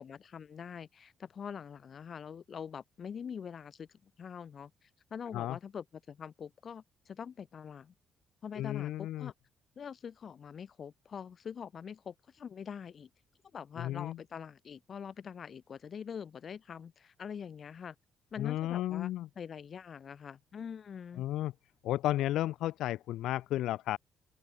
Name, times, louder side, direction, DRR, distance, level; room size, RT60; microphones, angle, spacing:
voice 1, 0.0-7.9 8.4-9.3 9.8-13.1 13.5-17.9 18.3-21.3, left 7 dB, 40° left, 3.3 m, -44 dB
voice 2, 8.5-9.3 13.8-14.2 18.4-19.3 21.2-21.5 21.8-24.0, left 14 dB, 80° left, 1.5 m, -33 dB
open air
cardioid pair, 135°, 0 cm